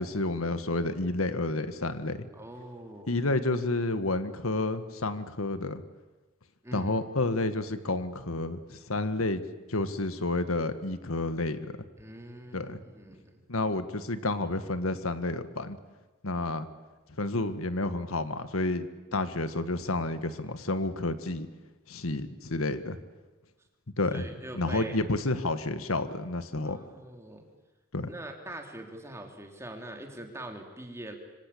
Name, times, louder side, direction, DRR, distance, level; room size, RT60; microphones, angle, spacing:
voice 1, 0.0-2.3 3.1-5.8 6.7-9.4 9.7-11.7 12.5-12.8 13.5-15.8 16.2-16.7 17.2-18.9 19.1-21.5 21.9-23.0 24.0-24.3 24.5-26.8 27.9-28.1, left 2 dB, 85° left, 11 dB, 1.7 m, -30 dB
voice 2, 2.3-3.3 6.6-6.9 12.0-13.4 24.1-25.0 26.6-27.5 28.1-31.2, right 1 dB, 15° right, 3 dB, 3.2 m, -43 dB
26.5 x 25.0 x 8.6 m, 1.2 s
head